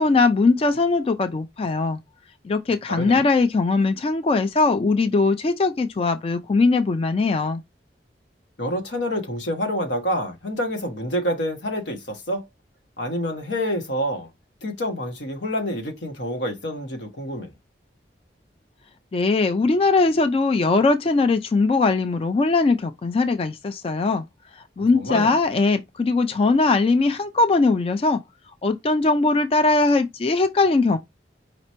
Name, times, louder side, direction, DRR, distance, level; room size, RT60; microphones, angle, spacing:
voice 1, 0.0-2.0 2.4-7.6 19.1-24.2 24.6-28.2 28.6-31.0, left 3 dB, 35° left, 0.3 m, -20 dB
voice 2, 2.9-3.2 8.6-12.5 13.0-14.3 14.6-17.5 24.8-25.4, equal, 85° left, 1.3 m, -27 dB
5.0 x 2.9 x 3.1 m
head